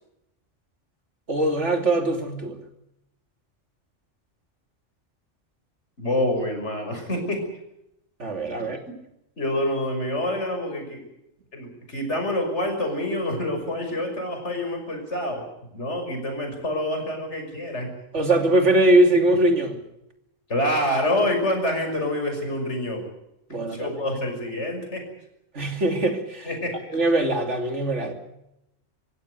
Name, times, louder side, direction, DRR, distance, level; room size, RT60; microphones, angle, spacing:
voice 1, 1.3-2.6 8.2-8.8 18.1-19.8 23.5-24.0 25.5-26.5 26.9-28.1, right 1 dB, 70° right, 5 dB, 3.1 m, -21 dB
voice 2, 6.0-7.4 8.9-9.0 9.4-11.1 11.5-15.4 15.7-17.9 20.5-23.1 23.6-25.0 26.4-26.8, left 1 dB, 65° left, 4 dB, 6.3 m, -27 dB
25.0 x 16.0 x 8.0 m, 0.85 s
omnidirectional pair, 1.3 m